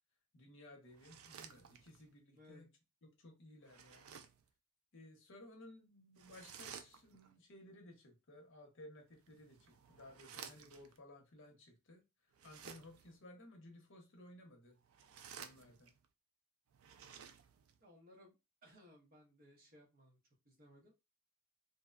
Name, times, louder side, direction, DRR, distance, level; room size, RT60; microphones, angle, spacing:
voice 1, 0.3-2.7 3.2-4.2 4.9-12.0 12.4-14.8 15.4-15.9, left 1 dB, 60° left, 0.8 m, -58 dB
sound 1, 0.9-2.1 3.6-4.5 6.2-7.3 9.1-11.0 12.3-13.2 14.8-16.0 16.7-17.8, right 7 dB, 70° right, 0.3 m, -55 dB
voice 2, 2.3-2.7 17.8-20.2 20.4-20.9, left 1 dB, 45° right, 0.8 m, -63 dB
2.7 x 2.1 x 2.3 m
head